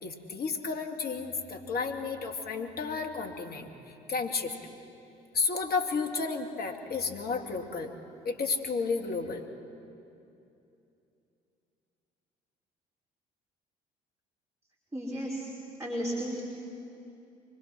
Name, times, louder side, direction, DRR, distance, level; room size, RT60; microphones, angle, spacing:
voice 1, 0.0-3.7 4.1-4.5 5.3-7.9 8.2-9.4, left 4 dB, 45° left, 4 dB, 2.5 m, -32 dB
voice 2, 14.9-15.5 15.8-16.4, equal, 15° right, -4 dB, 4.4 m, -33 dB
24.5 x 21.0 x 6.2 m, 2.7 s
hypercardioid pair, 50°, 21 cm